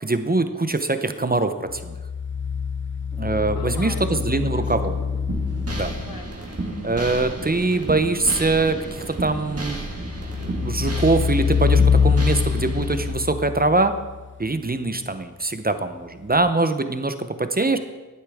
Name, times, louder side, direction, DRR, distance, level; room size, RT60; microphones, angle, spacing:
voice 1, 0.0-2.0 3.2-5.0 5.7-5.9 6.8-9.8 10.4-13.9 14.4-17.8, right 3 dB, 25° right, 9 dB, 0.7 m, -23 dB
sound 1, 1.7-6.3 9.7-14.3 16.4-16.5, left 6 dB, 35° left, 0.4 m, -24 dB
Wind, 3.1-11.8, equal, 15° left, 2.3 m, -44 dB
voice 2, 3.5-5.2 5.9-6.9 17.6-17.8, left 3 dB, 80° left, 5 dB, 1.1 m, -41 dB
sound 2, 5.3-13.1, right 2 dB, 45° right, 1.7 m, -32 dB
11.5 x 9.4 x 3.5 m, 1.2 s
wide cardioid pair, 55°, 35 cm